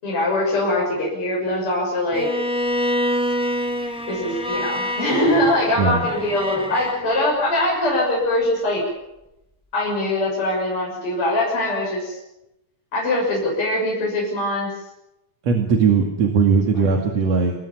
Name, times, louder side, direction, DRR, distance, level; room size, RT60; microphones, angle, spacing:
voice 1, 0.0-2.3 4.1-8.8 9.7-12.2 12.9-14.7 16.7-16.9, left 1 dB, 35° left, -4 dB, 7.4 m, -22 dB
Bowed string instrument, 2.1-7.0, equal, 5° right, 1.0 m, -26 dB
voice 2, 15.4-17.5, right 5 dB, 50° right, 3 dB, 3.1 m, -18 dB
27.5 x 20.0 x 7.2 m, 0.91 s
omnidirectional pair, 4.3 m